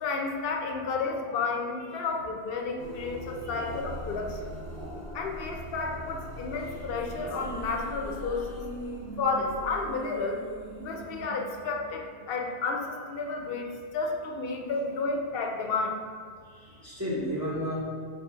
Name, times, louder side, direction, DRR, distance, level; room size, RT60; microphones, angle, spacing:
voice 1, 0.0-4.5 5.1-8.6 9.2-10.4 10.8-16.0, left 4 dB, 70° left, 2 dB, 0.7 m, -31 dB
sound 1, 2.8-10.7, equal, 70° right, 0.9 m, -41 dB
sound 2, 6.5-12.9, right 3 dB, 30° left, 0.5 m, -45 dB
voice 2, 16.4-17.8, equal, 20° right, -8 dB, 0.7 m, -34 dB
4.2 x 2.7 x 3.6 m, 2.1 s
omnidirectional pair, 1.1 m